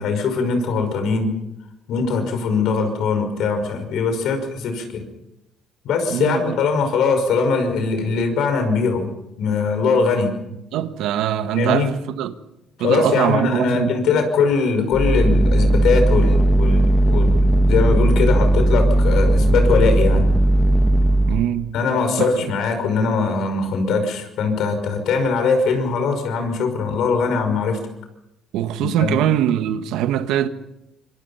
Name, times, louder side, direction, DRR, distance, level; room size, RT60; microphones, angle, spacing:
voice 1, 0.0-1.3 1.9-5.0 5.8-9.1 9.4-10.3 11.5-11.9 12.8-20.3 21.7-27.8 28.8-29.2, left 4 dB, 75° left, 5.6 m, -21 dB
voice 2, 6.1-6.6 10.7-12.3 12.8-14.0 21.3-21.8 22.2-22.5 28.5-30.5, right 11 dB, 85° right, 1.4 m, -22 dB
sound 1, 14.9-21.5, right 1 dB, 5° left, 1.6 m, -16 dB
26.0 x 23.5 x 5.7 m
cardioid pair, 95°, 0 cm